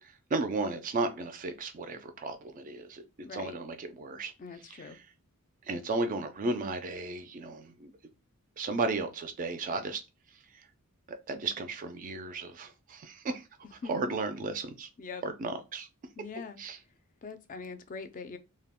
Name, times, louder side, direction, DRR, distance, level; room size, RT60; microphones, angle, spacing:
voice 1, 0.0-3.0 3.3-4.3 4.7-5.1 5.7-7.9 8.6-10.0 11.1-13.4 13.7-14.9 15.2-15.9 16.6-16.8, right 3 dB, 35° right, 0.3 m, -34 dB
voice 2, 3.2-3.5 4.4-5.0 13.8-13.9 15.0-15.2 16.2-16.6 17.2-18.4, left 4 dB, 35° left, 0.4 m, -42 dB
2.2 x 2.1 x 3.4 m
head